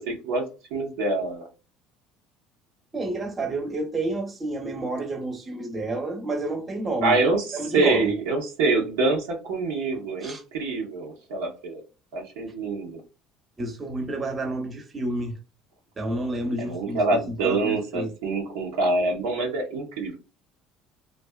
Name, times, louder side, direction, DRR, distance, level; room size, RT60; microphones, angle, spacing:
voice 1, 0.0-1.5 7.0-11.8 12.1-13.0 16.6-20.2, right 3 dB, 85° right, 0.7 m, -26 dB
voice 2, 2.9-7.2 7.5-8.1 10.2-10.4 13.6-15.4 16.0-18.1, right 2 dB, 30° right, 0.8 m, -30 dB
2.5 x 2.3 x 2.2 m
supercardioid pair, 80°, 0 cm